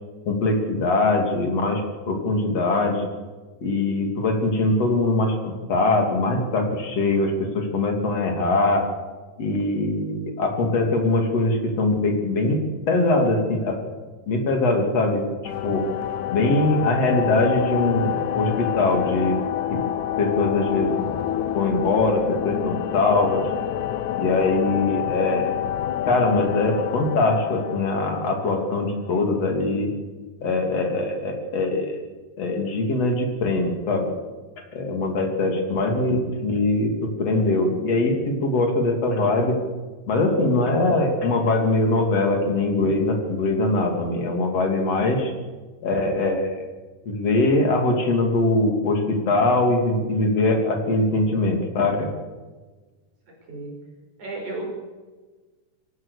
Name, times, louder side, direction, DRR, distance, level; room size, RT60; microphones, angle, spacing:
voice 1, 0.3-1.8 2.1-3.1 3.6-8.8 9.4-12.6 12.9-13.8 14.3-15.2 15.6-15.9 16.3-19.4 19.7-19.8 20.2-21.1 21.5-23.5 24.2-25.5 26.1-29.9 30.4-32.1 32.4-34.1 34.7-39.6 40.1-45.3 45.8-46.6 47.0-52.1, left 2 dB, 55° left, 3 dB, 4.1 m, -22 dB
sound 1, 15.5-29.0, left 11 dB, 80° left, 2.3 m, -28 dB
voice 2, 53.3-53.7 54.2-54.6, right 2 dB, 75° right, 0 dB, 7.0 m, -34 dB
24.0 x 17.5 x 6.7 m, 1.3 s
omnidirectional pair, 3.4 m